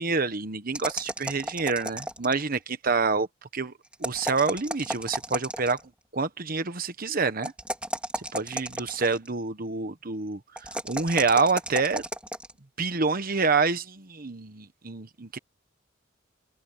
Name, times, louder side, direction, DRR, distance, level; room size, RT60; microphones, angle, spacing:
voice 1, 0.0-3.3 3.5-3.7 4.0-5.8 6.1-7.5 8.3-12.0 12.8-15.4, right 4 dB, 50° right, 1.2 m, -27 dB
sound 1, 0.7-2.5 3.9-5.9 7.4-9.3 10.6-12.5, right 1 dB, 5° right, 3.7 m, -33 dB
head